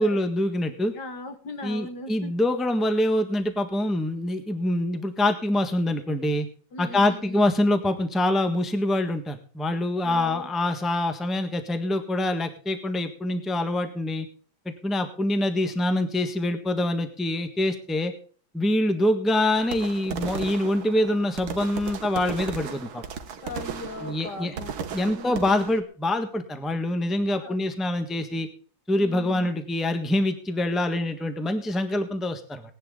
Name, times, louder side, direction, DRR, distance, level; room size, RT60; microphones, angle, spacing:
voice 1, 0.0-0.9 1.6-6.5 6.8-14.3 14.6-18.1 18.5-23.0 24.0-24.6 24.9-28.5 28.9-32.6, left 1 dB, ahead, 7 dB, 1.2 m, -25 dB
voice 2, 0.9-2.3 6.7-7.4 10.0-10.5 23.4-24.7 25.1-25.7 27.4-27.6 28.9-29.5, left 3 dB, 60° left, 8 dB, 2.1 m, -39 dB
sound 1, 19.6-25.8, right 6 dB, 85° right, 2.1 m, -36 dB
18.5 x 11.0 x 3.8 m, 0.41 s
omnidirectional pair, 2.2 m